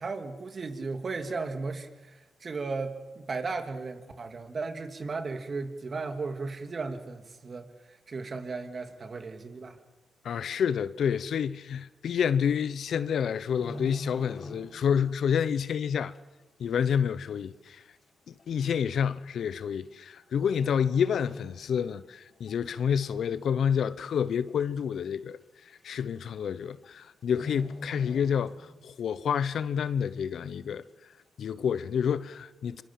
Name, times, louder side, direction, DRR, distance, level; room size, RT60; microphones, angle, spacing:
voice 1, 0.0-9.8, right 4 dB, 50° right, 2.9 m, -36 dB
voice 2, 10.2-16.1 16.6-17.8 18.3-25.4 25.8-30.8 31.4-32.8, left 7 dB, 70° left, 0.8 m, -29 dB
sound 1, 13.3-15.0 15.3-15.6 16.1-16.2 17.1-17.2 17.5-17.6 18.4-18.6 19.7-20.1 20.4-22.0 22.3-22.5 23.0-23.5 23.9-24.0 24.2-24.3 24.7-24.8 25.8-25.9 26.2-26.5 26.7-26.9 27.2-28.9 29.2-29.3, left 1 dB, 55° left, 5.1 m, -43 dB
25.5 x 24.0 x 7.6 m
supercardioid pair, 60°, 0 cm